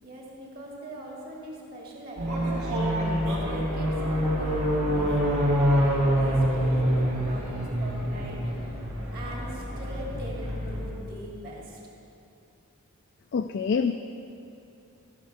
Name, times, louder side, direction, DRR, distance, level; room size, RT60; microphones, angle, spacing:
voice 1, 0.0-2.9 3.3-8.7 9.1-11.8, equal, 45° right, -3 dB, 2.4 m, -42 dB
sound 1, 2.2-10.9, equal, 85° right, 3.0 m, -26 dB
voice 2, 13.3-13.9, left 5 dB, 50° left, 7 dB, 0.3 m, -25 dB
14.0 x 6.6 x 5.6 m, 2.7 s
head